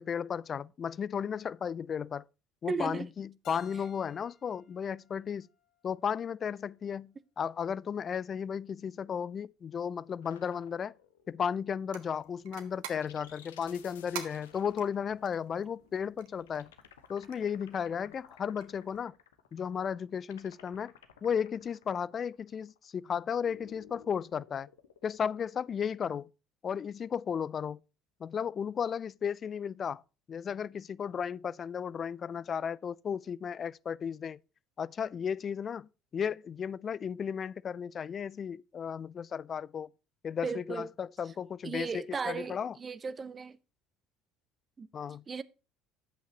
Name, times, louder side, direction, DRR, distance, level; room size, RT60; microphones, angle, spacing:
voice 1, 0.0-2.2 2.6-5.5 5.8-10.9 11.3-16.7 17.1-19.1 19.5-20.9 21.2-24.7 25.0-26.3 26.6-27.8 28.2-30.0 30.3-34.4 34.8-39.9 40.2-42.8 44.9-45.2, left 7 dB, 35° left, 0.4 m, -34 dB
voice 2, 2.7-3.1 40.4-40.9 41.6-43.6 44.8-44.9 45.3-45.4, right 5 dB, 30° right, 0.7 m, -35 dB
Keyboard (musical), 3.4-6.3, left 5 dB, 55° left, 4.4 m, -57 dB
sound 1, 10.2-12.4 13.0-26.1, left 9 dB, 75° left, 1.0 m, -57 dB
sound 2, 11.9-19.0, right 9 dB, 65° right, 1.3 m, -49 dB
10.5 x 8.3 x 2.9 m
figure-of-eight pair, 60°, 0 cm